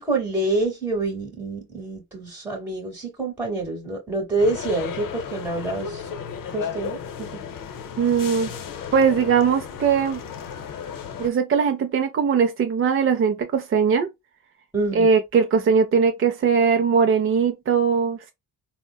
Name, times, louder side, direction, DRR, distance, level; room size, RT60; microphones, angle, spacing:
voice 1, 0.0-6.1 6.5-7.4 14.7-15.1, right 2 dB, 5° right, 0.9 m, -27 dB
sound 1, 4.4-11.3, left 7 dB, 65° left, 0.6 m, -34 dB
voice 2, 8.0-8.5 8.9-10.2 11.2-14.1 14.9-18.3, right 6 dB, 40° right, 0.4 m, -20 dB
3.8 x 2.0 x 2.2 m
cardioid pair, 110°, 36 cm